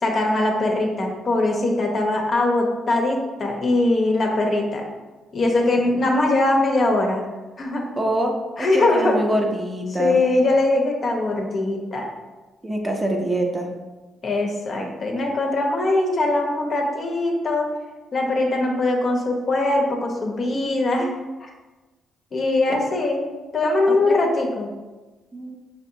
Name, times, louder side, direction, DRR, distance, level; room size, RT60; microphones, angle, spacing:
voice 1, 0.0-4.8 5.3-7.2 7.6-7.8 8.6-9.2 10.0-12.1 14.2-17.7 18.1-21.1 21.4-21.5 22.3-23.3 23.5-24.7, left 2 dB, 45° left, 1 dB, 0.8 m, -21 dB
voice 2, 8.0-10.2 12.6-13.7 20.5-21.1 23.9-24.3 25.3-25.6, right 1 dB, 20° right, 2 dB, 0.6 m, -26 dB
5.6 x 2.8 x 2.7 m, 1.2 s
cardioid pair, 90°, 0 cm